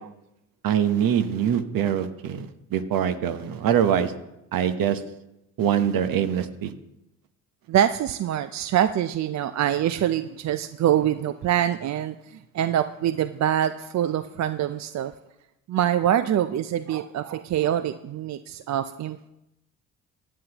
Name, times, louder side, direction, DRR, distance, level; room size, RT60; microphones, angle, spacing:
voice 1, 0.6-2.5 2.7-4.1 4.5-5.0 5.6-6.7, right 9 dB, 65° right, 10 dB, 1.0 m, -23 dB
voice 2, 7.7-15.1 15.7-19.3, right 11 dB, 45° right, 12 dB, 0.5 m, -25 dB
15.0 x 9.7 x 2.9 m, 0.88 s
supercardioid pair, 60°, 38 cm